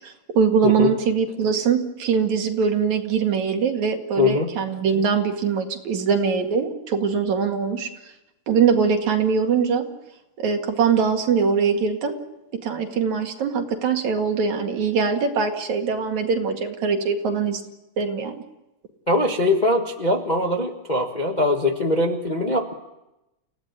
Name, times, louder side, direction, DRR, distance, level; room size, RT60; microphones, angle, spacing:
voice 1, 0.0-7.9 8.5-9.9 10.4-12.2 12.6-17.6 18.0-18.3, right 6 dB, 65° right, 4 dB, 3.4 m, -22 dB
voice 2, 4.2-4.5 19.1-22.7, left 2 dB, 85° left, 2 dB, 0.4 m, -21 dB
29.0 x 16.5 x 9.6 m, 0.95 s
omnidirectional pair, 3.7 m